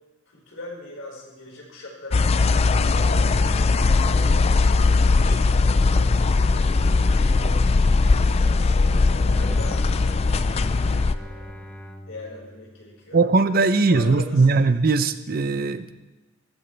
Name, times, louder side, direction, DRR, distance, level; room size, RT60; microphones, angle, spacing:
voice 1, 0.3-4.6 5.0-6.1 6.5-7.7 8.0-11.7 12.1-13.2 13.8-14.6, left 1 dB, 85° left, -2 dB, 4.9 m, -41 dB
sound 1, 2.1-11.1, left 3 dB, 30° left, 0.4 m, -19 dB
sound 2, 2.4-10.7, left 2 dB, 65° left, 2.5 m, -41 dB
Bowed string instrument, 9.3-13.4, equal, 10° left, 0.8 m, -41 dB
voice 2, 13.1-15.9, right 3 dB, 50° right, 12 dB, 0.6 m, -19 dB
15.5 x 14.5 x 3.3 m, 1.1 s
head